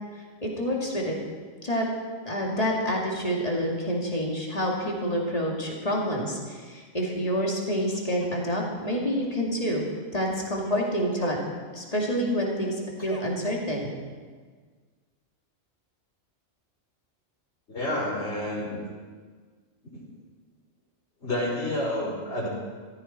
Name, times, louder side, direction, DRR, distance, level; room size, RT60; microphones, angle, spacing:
voice 1, 0.4-1.2 1.6-1.9 2.2-9.9 10.1-11.4 11.7-13.9, equal, 30° left, -2 dB, 2.3 m, -28 dB
voice 2, 17.7-18.8 21.2-22.5, left 1 dB, 55° left, -4 dB, 3.9 m, -29 dB
14.5 x 14.0 x 4.3 m, 1.5 s
omnidirectional pair, 1.4 m